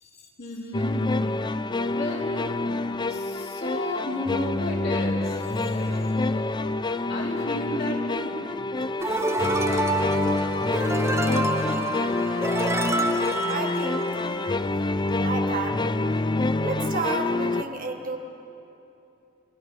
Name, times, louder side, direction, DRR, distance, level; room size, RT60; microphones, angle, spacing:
voice 1, 0.0-2.5 2.9-6.7 7.1-8.7 9.4-9.8, left 1 dB, 50° left, -3 dB, 4.1 m, -34 dB
sound 1, 0.7-17.6, left 2 dB, 20° left, 0.5 m, -27 dB
sound 2, 9.0-14.5, right 2 dB, 15° right, 1.0 m, -28 dB
voice 2, 9.9-10.5 11.3-11.9 13.5-14.1 15.2-15.9 16.6-18.2, right 3 dB, 45° right, 4 dB, 1.6 m, -32 dB
29.0 x 21.0 x 5.6 m, 2.9 s
head